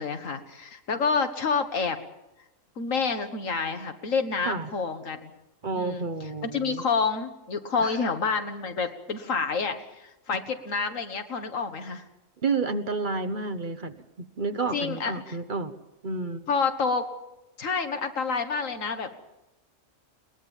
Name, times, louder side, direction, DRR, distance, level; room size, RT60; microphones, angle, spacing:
voice 1, 0.0-2.0 2.8-5.3 5.7-6.1 6.4-12.0 14.7-15.4 16.5-17.1 17.6-19.2, left 5 dB, 85° left, 7 dB, 2.0 m, -28 dB
voice 2, 5.6-6.8 7.8-8.0 12.4-14.0 14.4-15.7 16.0-16.5, right 4 dB, 40° right, 10 dB, 1.0 m, -30 dB
22.0 x 20.0 x 7.2 m, 0.96 s
omnidirectional pair, 1.3 m